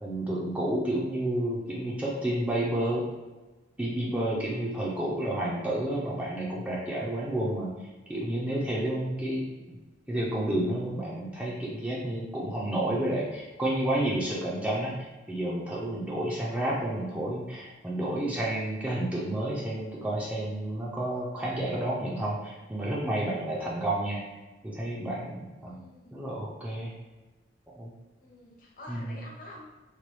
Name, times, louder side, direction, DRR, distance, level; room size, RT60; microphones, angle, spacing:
voice 1, 0.0-3.1 3.8-7.7 8.1-9.5 10.1-24.3 24.6-25.8 26.1-26.9 27.8-27.9 28.9-29.2, right 1 dB, 5° right, -5 dB, 0.4 m, -30 dB
voice 2, 25.7-26.3 28.2-29.7, left 1 dB, 45° left, -2 dB, 0.7 m, -48 dB
3.0 x 2.2 x 3.1 m, 1.2 s
head